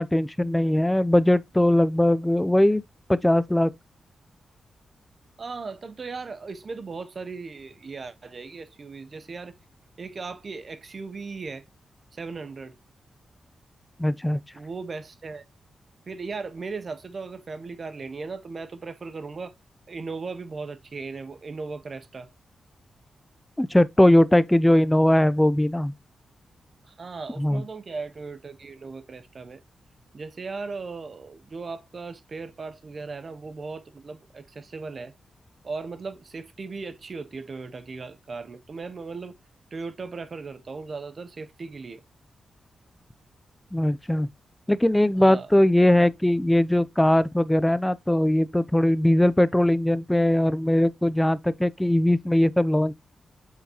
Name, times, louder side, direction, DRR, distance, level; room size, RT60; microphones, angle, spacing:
voice 1, 0.0-2.8 3.1-3.7 14.0-14.4 23.6-25.9 27.4-27.6 43.7-44.3 44.7-52.9, left 1 dB, 5° left, 0.4 m, -20 dB
voice 2, 5.4-9.6 10.0-11.6 12.1-12.8 14.5-15.4 16.1-19.5 19.9-22.3 26.8-29.6 30.1-35.1 35.6-39.4 39.7-42.0 45.2-45.5, right 4 dB, 40° right, 0.5 m, -37 dB
8.0 x 4.7 x 2.8 m
wide cardioid pair, 130°, 0 cm